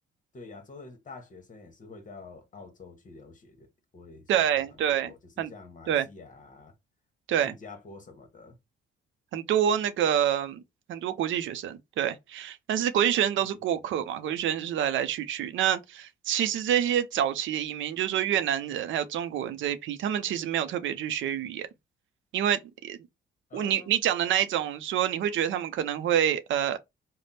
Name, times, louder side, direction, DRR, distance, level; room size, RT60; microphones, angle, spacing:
voice 1, 0.3-3.7 3.9-6.7 7.4-8.6 13.4-13.8 23.5-23.9, left 3 dB, 40° left, 1.1 m, -48 dB
voice 2, 4.3-5.5 5.9-6.1 7.3-7.5 9.3-10.6 10.9-21.7 22.3-23.0 23.5-26.8, right 10 dB, 75° right, 0.5 m, -27 dB
3.3 x 2.1 x 4.0 m
cardioid pair, 90°, 20 cm